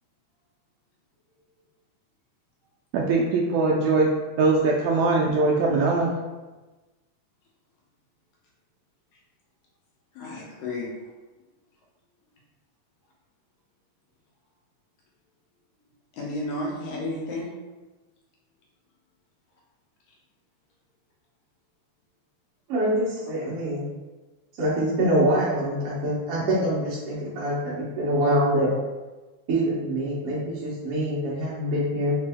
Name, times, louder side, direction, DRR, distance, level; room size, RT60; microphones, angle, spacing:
voice 1, 2.9-4.1 4.4-6.1, right 3 dB, 80° right, -2 dB, 1.7 m, -21 dB
voice 2, 10.2-10.9 16.2-17.5, left 2 dB, 70° left, -3 dB, 2.0 m, -32 dB
voice 3, 22.7-23.9 24.6-28.7 29.5-32.2, right 1 dB, 65° right, -8 dB, 1.5 m, -25 dB
5.1 x 2.6 x 3.4 m, 1.2 s
omnidirectional pair, 3.7 m